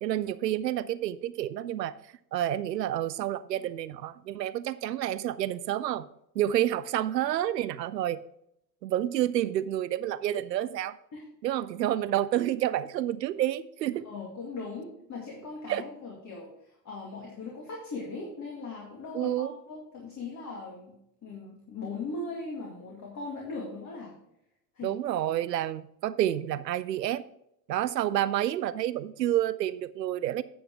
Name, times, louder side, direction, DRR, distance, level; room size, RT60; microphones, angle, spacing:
voice 1, 0.0-2.0 2.3-6.1 6.4-8.2 8.8-11.0 11.4-14.1 15.7-15.8 19.1-19.5 24.8-27.2 27.7-30.4, right 12 dB, 80° right, 0.5 m, -29 dB
voice 2, 14.0-16.5 16.8-21.0 21.2-24.2 24.8-25.0, left 3 dB, 35° left, 2.2 m, -39 dB
9.4 x 7.4 x 3.6 m
figure-of-eight pair, 65°, 50 cm